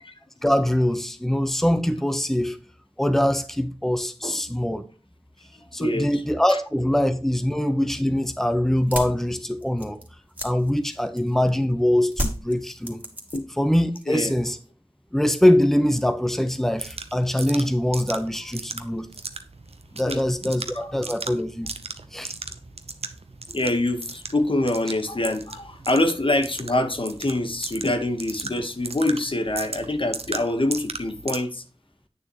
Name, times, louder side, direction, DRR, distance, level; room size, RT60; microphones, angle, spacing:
voice 1, 0.4-2.6 3.0-4.8 5.7-10.0 10.4-13.0 13.6-14.6 15.1-19.1 19.9-21.7 22.1-22.3, left 1 dB, 5° left, 1.0 m, -23 dB
voice 2, 5.8-6.2 6.5-6.6 13.3-13.4 14.1-14.3 20.1-20.2 20.7-20.9 23.5-31.6, left 1 dB, 60° left, 1.4 m, -25 dB
sound 1, 8.7-11.5 12.1-13.7 13.9-14.5, equal, 15° right, 2.5 m, -32 dB
sound 2, 16.8-31.4, right 3 dB, 90° right, 0.9 m, -37 dB
9.0 x 6.9 x 3.1 m
wide cardioid pair, 40°, 10 cm